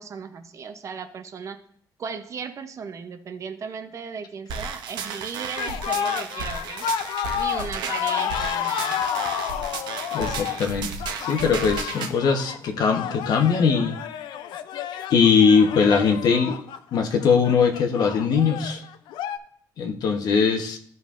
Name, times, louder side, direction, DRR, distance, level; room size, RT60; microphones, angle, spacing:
voice 1, 0.0-1.6 2.0-6.9 7.3-9.0, right 6 dB, 40° right, 8 dB, 0.7 m, -36 dB
sound 1, 4.5-12.1, right 5 dB, 75° right, 0.8 m, -34 dB
sound 2, 5.6-19.4, left 9 dB, 80° left, 0.5 m, -30 dB
voice 2, 10.1-10.9 11.2-14.0 15.1-16.6 16.9-18.8 19.8-20.8, left 6 dB, 60° left, 5 dB, 1.0 m, -20 dB
13.0 x 5.3 x 2.5 m, 0.64 s
cardioid pair, 130°, 8 cm